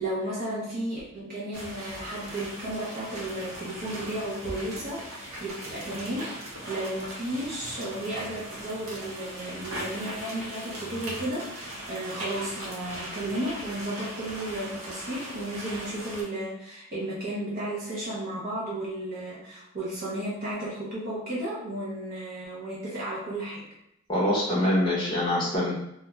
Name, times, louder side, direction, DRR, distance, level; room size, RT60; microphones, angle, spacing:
voice 1, 0.0-6.3 6.7-23.7, right 1 dB, 40° right, -7 dB, 0.6 m, -33 dB
sound 1, 1.5-16.2, equal, 85° right, 0.8 m, -39 dB
voice 2, 24.1-25.7, left 1 dB, 20° left, -6 dB, 0.6 m, -24 dB
2.2 x 2.2 x 2.9 m, 0.79 s
head